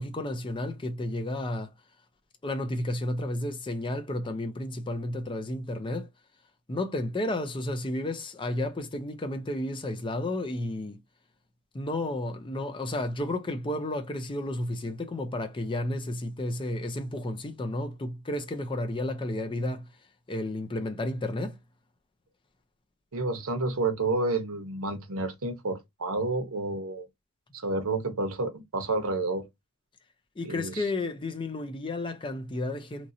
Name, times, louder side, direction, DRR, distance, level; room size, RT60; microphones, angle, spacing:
voice 1, 0.0-1.7 2.4-6.1 6.7-11.0 11.7-19.8 20.3-21.6 30.4-33.1, left 1 dB, 20° left, 0.5 m, -32 dB
voice 2, 23.1-27.1 27.6-29.4 30.4-30.8, right 3 dB, 65° right, 0.9 m, -30 dB
3.0 x 2.6 x 2.6 m
head